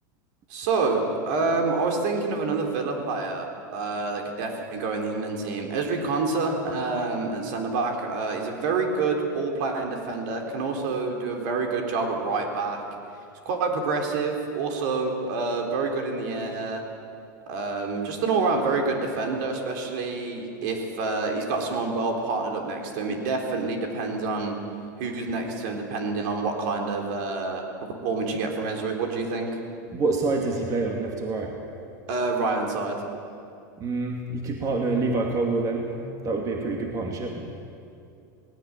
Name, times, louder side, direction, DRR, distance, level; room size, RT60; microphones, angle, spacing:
voice 1, 0.5-12.8 13.4-16.8 17.5-24.5 25.0-27.6 28.0-29.5 32.1-33.0, right 3 dB, 65° right, 2 dB, 4.0 m, -27 dB
voice 2, 29.9-31.5 33.8-36.0 36.2-37.5, right 3 dB, 35° right, 1 dB, 2.6 m, -27 dB
19.0 x 17.5 x 9.0 m, 2.5 s
supercardioid pair, 120°, 11 cm